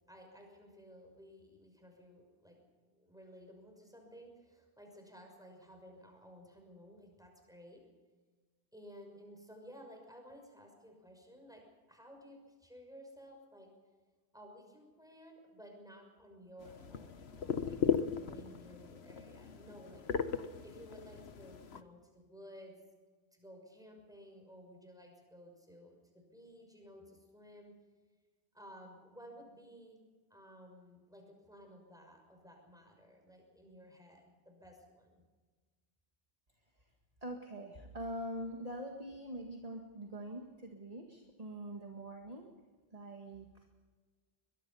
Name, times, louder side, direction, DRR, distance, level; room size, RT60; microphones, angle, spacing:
voice 1, 0.1-2.6 2.9-7.8 8.7-11.6 11.9-13.7 14.3-20.0 20.6-22.7 23.3-27.7 28.5-30.0 30.3-35.2, equal, 5° right, 2 dB, 6.1 m, -55 dB
sound 1, 16.6-21.8, left 7 dB, 85° left, 1.4 m, -37 dB
voice 2, 37.2-42.5 42.9-43.7, right 1 dB, 40° right, 2 dB, 2.0 m, -44 dB
23.0 x 22.0 x 5.7 m, 1.4 s
omnidirectional pair, 1.0 m